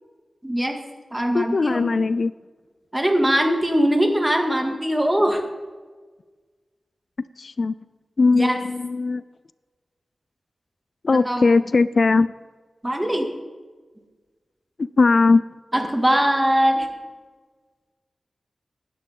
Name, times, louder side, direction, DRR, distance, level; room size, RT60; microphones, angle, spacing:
voice 1, 0.4-0.8 1.1-1.9 2.9-5.4 8.3-8.6 11.1-11.4 12.8-13.3 15.7-16.9, equal, 15° right, 3 dB, 2.2 m, -21 dB
voice 2, 1.3-2.3 7.4-7.7 8.2-9.2 11.0-12.3 14.8-15.4, left 3 dB, 55° left, 16 dB, 0.3 m, -19 dB
19.0 x 11.0 x 3.8 m, 1.4 s
wide cardioid pair, 75°, 0 cm